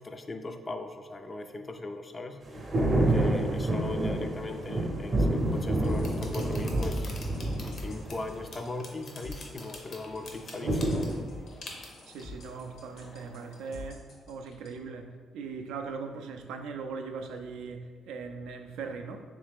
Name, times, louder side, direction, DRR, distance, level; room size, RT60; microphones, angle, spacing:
voice 1, 0.0-2.4 3.1-7.1 7.6-11.1, left 3 dB, 30° left, 7 dB, 0.3 m, -39 dB
sound 1, 2.5-8.4 10.6-11.2, right 1 dB, 35° right, 0.6 m, -28 dB
sound 2, 5.3-13.9, left 2 dB, 55° left, 0.7 m, -48 dB
sound 3, 5.5-14.7, left 3 dB, 80° left, 1.0 m, -47 dB
voice 2, 12.1-19.2, right 5 dB, 90° right, 5 dB, 0.3 m, -40 dB
3.2 x 3.1 x 3.4 m, 1.5 s
cardioid pair, 90°, 0 cm